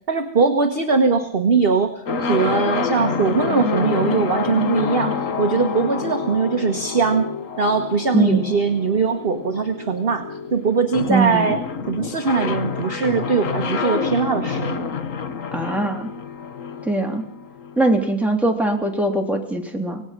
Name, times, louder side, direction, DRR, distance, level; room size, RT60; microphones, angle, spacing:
voice 1, 0.1-7.3 7.6-10.3 10.5-11.6 11.9-14.9, right 5 dB, 30° right, 5 dB, 1.3 m, -21 dB
sound 1, 2.0-17.8, left 5 dB, 50° left, 1.2 m, -27 dB
voice 2, 8.1-8.5 11.1-11.5 15.5-16.1 16.8-17.2 17.8-20.0, right 2 dB, ahead, 1 dB, 3.1 m, -21 dB
25.5 x 18.5 x 6.0 m, 0.64 s
omnidirectional pair, 2.2 m